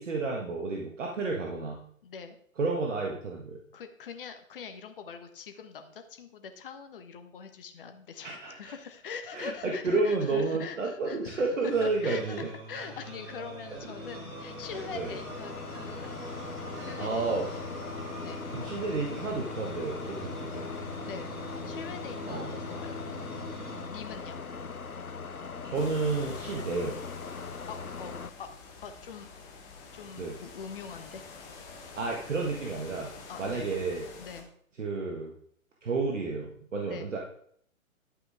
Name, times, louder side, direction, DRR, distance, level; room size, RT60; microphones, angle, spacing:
voice 1, 0.0-1.8 2.6-3.6 8.2-8.7 9.3-12.5 14.9-15.1 17.0-17.6 18.5-20.7 22.3-22.5 25.6-27.0 30.2-30.4 32.0-33.1 33.4-34.1 34.8-35.3 35.8-37.2, right 3 dB, 60° right, 0 dB, 1.7 m, -31 dB
voice 2, 2.0-2.4 3.7-11.5 11.8-16.1 16.8-17.2 18.2-18.4 21.0-21.4 21.7-23.0 23.8-24.4 27.7-28.5 28.8-29.3 29.9-31.2 33.3-33.7 34.2-34.5 36.9-37.1, left 6 dB, 40° left, 7 dB, 1.2 m, -43 dB
sound 1, 11.7-24.6, equal, 25° right, 4.8 m, -43 dB
sound 2, 13.2-28.3, left 5 dB, 85° left, 0.7 m, -41 dB
sound 3, 25.7-34.4, left 4 dB, 10° left, 0.6 m, -48 dB
11.0 x 8.7 x 3.5 m, 0.63 s
figure-of-eight pair, 125°, 42 cm